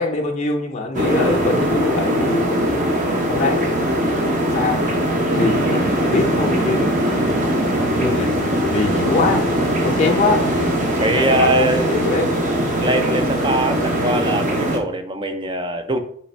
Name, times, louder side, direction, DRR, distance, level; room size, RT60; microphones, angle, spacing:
voice 1, 0.0-2.7 3.3-3.6 4.5-7.0 8.0-9.5 9.8-10.5 11.2-12.3, left 3 dB, 40° left, 2 dB, 0.5 m, -23 dB
sound 1, 0.9-14.8, equal, 45° right, 0.8 m, -21 dB
Thunder / Rain, 5.3-11.7, equal, 75° right, 1.5 m, -28 dB
voice 2, 11.0-11.9 12.7-16.0, right 2 dB, 25° right, 8 dB, 0.4 m, -22 dB
3.3 x 3.2 x 4.2 m, 0.63 s
head